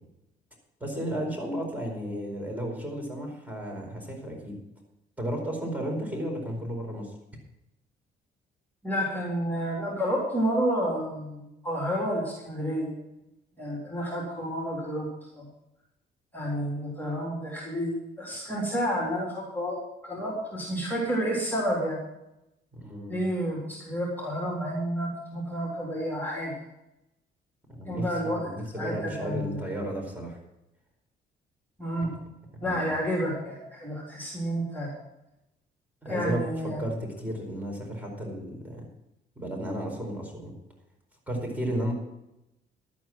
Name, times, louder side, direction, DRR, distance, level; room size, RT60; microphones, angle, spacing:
voice 1, 0.8-4.6 5.2-7.1 22.7-23.2 27.7-30.4 32.6-32.9 36.0-36.4 36.8-38.9 39.4-40.5 41.3-41.9, right 1 dB, 10° right, 0 dB, 4.6 m, -33 dB
voice 2, 8.8-12.9 13.6-15.1 15.3-15.5 16.3-22.0 23.1-26.6 27.9-28.5 28.8-29.7 31.8-32.1 32.6-34.9 36.1-36.8, equal, 10° left, -3 dB, 3.8 m, -30 dB
11.5 x 9.5 x 6.1 m, 0.89 s
cardioid pair, 90°, 20 cm